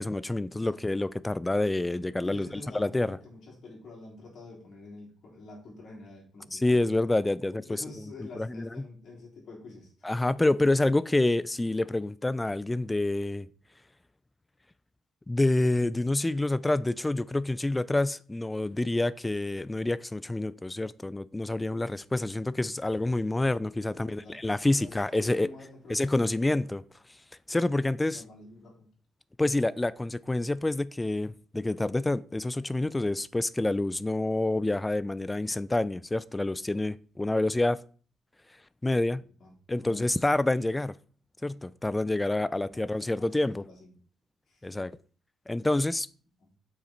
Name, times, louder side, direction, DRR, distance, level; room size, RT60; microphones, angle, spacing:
voice 1, 0.0-2.5 2.7-3.2 6.5-7.8 8.4-8.7 10.0-13.5 15.3-25.5 25.9-26.8 27.5-28.2 29.4-37.8 38.8-39.2 39.7-41.0 41.4-43.6 44.6-44.9 45.5-46.1, left 2 dB, 15° left, 0.4 m, -27 dB
voice 2, 2.2-7.0 7.6-9.9 23.9-26.3 28.1-28.9 39.4-40.3 42.6-43.9 44.5-44.7, left 3 dB, 55° left, 3.6 m, -48 dB
6.5 x 5.7 x 4.4 m
cardioid pair, 90°, 0 cm